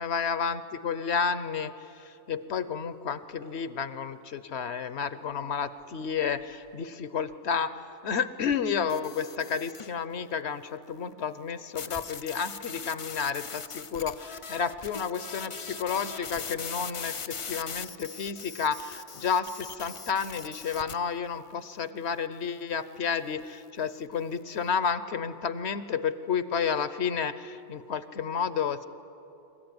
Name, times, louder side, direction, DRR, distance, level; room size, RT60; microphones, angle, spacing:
voice 1, 0.0-28.8, left 6 dB, 65° left, 13 dB, 1.0 m, -31 dB
sound 1, 8.9-10.0 11.8-20.9, left 6 dB, 45° left, 0.4 m, -40 dB
25.0 x 14.0 x 9.5 m, 2.8 s
omnidirectional pair, 1.3 m